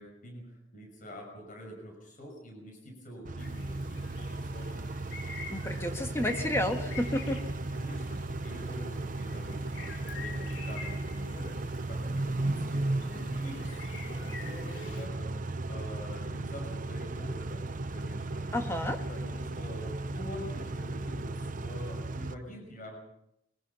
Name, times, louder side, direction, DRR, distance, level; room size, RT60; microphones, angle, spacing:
voice 1, 0.0-4.9 7.7-15.4 15.7-18.5 19.1-23.0, equal, 40° left, 2 dB, 5.9 m, -45 dB
Car / Idling / Accelerating revving vroom, 3.2-22.3, right 2 dB, 40° right, 0.8 m, -35 dB
sound 1, 3.4-15.1, left 3 dB, 75° left, 4.6 m, -47 dB
voice 2, 5.5-7.4 18.5-19.0, left 1 dB, 15° left, 4 dB, 1.8 m, -31 dB
23.0 x 20.0 x 5.7 m, 0.80 s
head